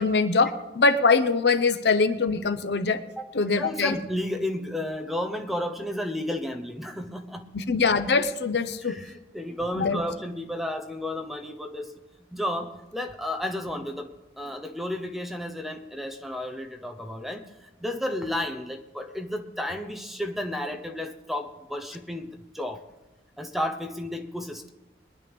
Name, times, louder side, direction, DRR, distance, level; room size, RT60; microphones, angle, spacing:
voice 1, 0.0-3.0 3.3-4.0 7.5-9.0 9.7-10.0, left 4 dB, 70° left, 11 dB, 0.8 m, -23 dB
voice 2, 3.6-7.5 8.8-11.9 12.3-22.3 22.5-22.8 23.4-24.7, left 1 dB, ahead, 6 dB, 0.8 m, -32 dB
22.0 x 10.5 x 3.5 m, 1.0 s
head